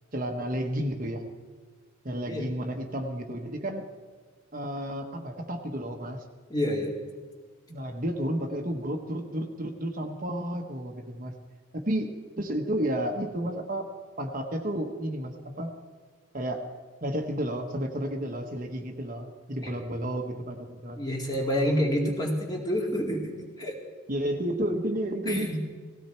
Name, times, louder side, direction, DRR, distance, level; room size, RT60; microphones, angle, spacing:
voice 1, 0.1-1.3 2.0-3.9 4.5-6.2 7.7-11.3 11.7-12.1 12.4-13.9 14.2-15.7 16.3-16.6 17.0-21.0 24.1-25.6, right 1 dB, 40° right, 3 dB, 1.2 m, -31 dB
voice 2, 6.5-6.9 19.6-19.7 21.0-23.3 23.6-23.8 25.3-25.6, equal, 20° left, -1 dB, 2.3 m, -28 dB
18.5 x 16.0 x 4.5 m, 1.5 s
head